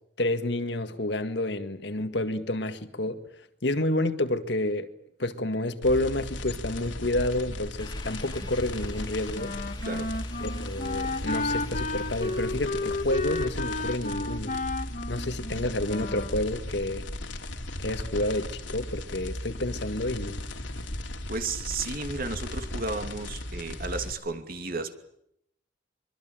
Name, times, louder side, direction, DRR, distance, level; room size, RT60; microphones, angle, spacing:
voice 1, 0.2-3.2 3.6-4.9 5.2-9.5 10.4-14.6 15.1-17.1 17.8-20.4, left 1 dB, 60° left, 1.9 m, -29 dB
sound 1, 5.8-24.1, left 1 dB, 80° left, 3.0 m, -36 dB
sound 2, 7.8-14.5, left 3 dB, 20° left, 2.3 m, -49 dB
Wind instrument woodwind instrument, 9.3-16.4, left 2 dB, 40° left, 1.8 m, -33 dB
voice 2, 9.8-10.2 21.3-24.9, right 3 dB, 50° right, 2.6 m, -33 dB
24.0 x 24.0 x 9.1 m
head